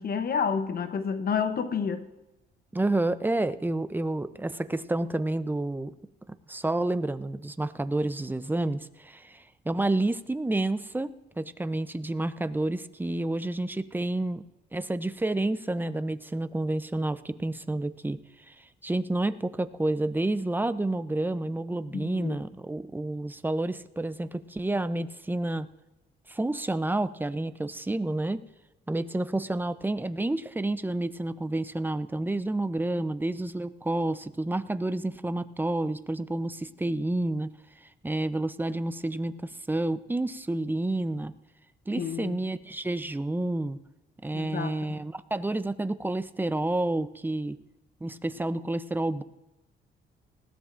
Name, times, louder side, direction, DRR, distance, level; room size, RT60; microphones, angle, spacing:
voice 1, 0.0-2.0 21.9-22.4 42.0-42.4 44.3-45.0, left 6 dB, 50° left, 9 dB, 0.9 m, -30 dB
voice 2, 2.7-5.9 6.5-14.4 14.7-18.2 18.5-25.7 26.3-28.4 28.9-37.5 38.0-41.3 41.9-43.8 44.2-47.6 48.0-49.2, right 2 dB, 10° right, 12 dB, 0.5 m, -29 dB
19.5 x 15.5 x 2.5 m, 1.0 s
cardioid pair, 90°, 20 cm